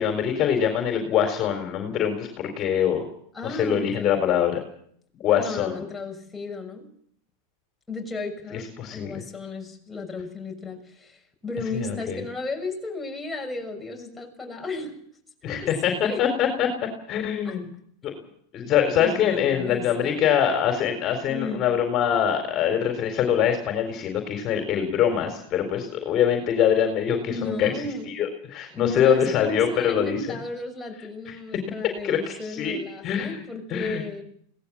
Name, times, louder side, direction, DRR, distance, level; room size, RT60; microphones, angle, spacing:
voice 1, 0.0-3.1 3.4-4.6 5.2-5.8 8.5-9.2 11.7-12.2 15.4-16.7 17.1-17.7 18.0-18.1 18.5-27.7 28.1-30.4 31.3-31.4 32.0-32.8 33.0-33.4 33.7-34.0, left 9 dB, 40° left, 5 dB, 4.0 m, -24 dB
voice 2, 3.3-4.1 5.4-6.9 7.9-14.9 15.4-16.2 17.4-17.6 18.9-20.2 21.3-21.7 27.3-28.1 28.7-34.2, left 3 dB, 10° left, 1 dB, 6.5 m, -34 dB
22.0 x 18.0 x 7.4 m, 0.64 s
hypercardioid pair, 110°, 0 cm